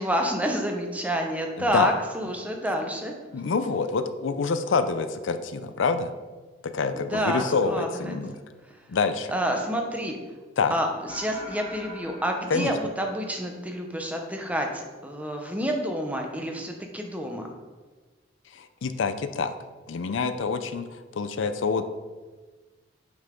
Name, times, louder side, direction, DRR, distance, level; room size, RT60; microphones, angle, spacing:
voice 1, 0.0-3.1 7.1-8.1 9.3-10.2 10.7-10.9 11.1-17.5, equal, 5° right, 2 dB, 0.8 m, -28 dB
voice 2, 1.6-1.9 2.7-2.8 3.3-6.1 6.6-8.4 8.9-9.3 10.6-10.7 12.5-12.7 18.5-19.5 19.9-21.8, left 4 dB, 75° left, 11 dB, 0.5 m, -27 dB
sound 1, 11.1-13.7, left 1 dB, 30° left, 1.7 m, -43 dB
8.7 x 5.6 x 3.7 m, 1.3 s
head